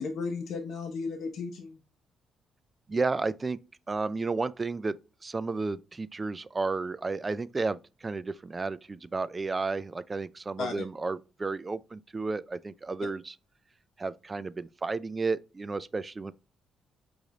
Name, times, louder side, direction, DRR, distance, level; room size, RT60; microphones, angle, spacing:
voice 1, 0.0-1.8 10.6-10.7, left 4 dB, 70° left, 0.7 m, -34 dB
voice 2, 2.9-3.6 3.9-13.3 14.0-16.3, right 3 dB, 25° right, 0.3 m, -32 dB
4.8 x 2.6 x 3.0 m
cardioid pair, 90°, 0 cm